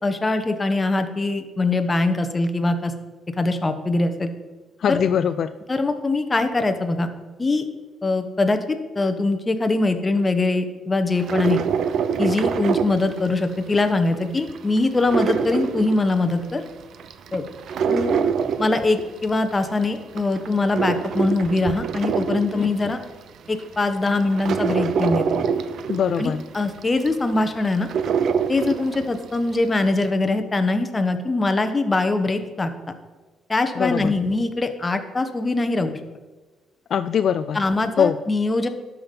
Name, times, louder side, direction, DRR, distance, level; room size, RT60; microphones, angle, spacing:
voice 1, 0.0-2.9 3.4-4.3 4.9-5.0 5.7-7.1 7.4-7.6 8.0-8.6 8.9-11.6 12.2-16.6 17.3-17.4 17.9-18.2 18.6-23.0 23.5-25.2 26.2-27.9 28.5-33.0 33.5-36.0 37.5-38.7, left 2 dB, 25° left, 8 dB, 1.1 m, -22 dB
voice 2, 4.8-5.5 22.6-22.7 25.9-26.4 33.8-34.1 36.9-37.6 38.0-38.2, left 8 dB, 60° left, 11 dB, 0.3 m, -22 dB
sound 1, 11.2-13.8 14.1-16.5 16.9-19.5 20.0-23.0 23.6-23.7 24.1-29.3 29.6-29.7, right 6 dB, 65° right, 0.6 m, -25 dB
12.0 x 5.9 x 5.4 m, 1.2 s
cardioid pair, 90°, 0 cm